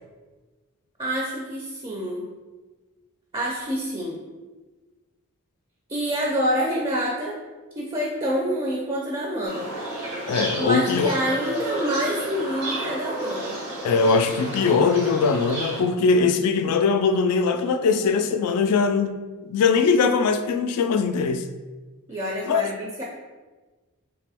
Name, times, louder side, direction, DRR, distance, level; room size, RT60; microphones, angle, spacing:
voice 1, 1.0-2.3 3.3-4.2 5.9-7.4 7.8-9.7 10.6-13.6 22.1-23.0, equal, 25° right, -2 dB, 0.4 m, -27 dB
sound 1, 9.4-15.8, right 1 dB, 80° right, 1.5 m, -32 dB
voice 2, 10.3-11.1 13.8-19.2 19.4-21.5 22.5-22.6, left 5 dB, 85° left, 8 dB, 0.3 m, -21 dB
3.5 x 2.9 x 3.4 m, 1.3 s
head